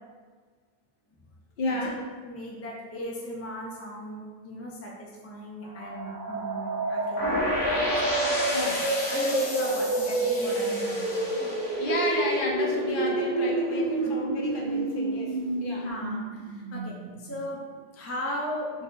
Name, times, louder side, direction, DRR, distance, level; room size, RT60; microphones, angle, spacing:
voice 1, 1.6-2.0 8.5-8.8 11.8-15.9, left 2 dB, 60° left, -2 dB, 0.7 m, -31 dB
voice 2, 2.2-7.4 8.0-8.4 9.1-11.5 14.0-14.1 15.8-18.8, left 1 dB, 20° left, -3 dB, 0.4 m, -37 dB
sound 1, 5.7-17.4, right 2 dB, 55° right, 0.7 m, -29 dB
sound 2, 7.2-13.0, left 1 dB, 80° left, 1.1 m, -32 dB
3.9 x 2.9 x 2.7 m, 1.5 s
omnidirectional pair, 1.1 m